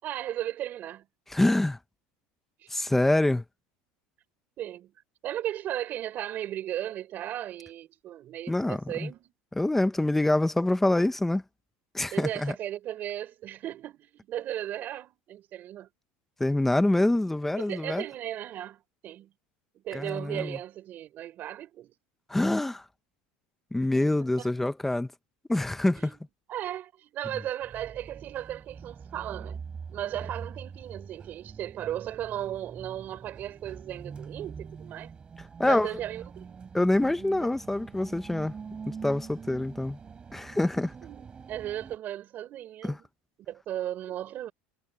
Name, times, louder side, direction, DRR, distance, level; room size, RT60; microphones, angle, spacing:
voice 1, 0.0-1.1 2.6-3.0 4.6-4.9 5.2-9.3 12.1-15.9 17.5-19.3 19.8-21.9 23.9-24.1 24.4-24.5 26.0-26.2 26.5-29.6 29.9-35.2 35.6-36.6 41.0-43.1 43.5-44.5, right 12 dB, 35° right, 5.4 m, -36 dB
voice 2, 1.3-1.8 2.7-3.4 8.5-9.1 9.6-11.4 11.9-12.5 16.4-18.0 19.9-20.6 22.3-22.8 23.7-25.1 25.5-26.2 35.6-35.9 36.7-38.5 38.8-40.0 40.3-40.9 42.8-43.0, left 1 dB, 5° left, 1.0 m, -25 dB
sound 1, 27.6-42.0, right 6 dB, 20° right, 4.0 m, -44 dB
cardioid pair, 160°, 5 cm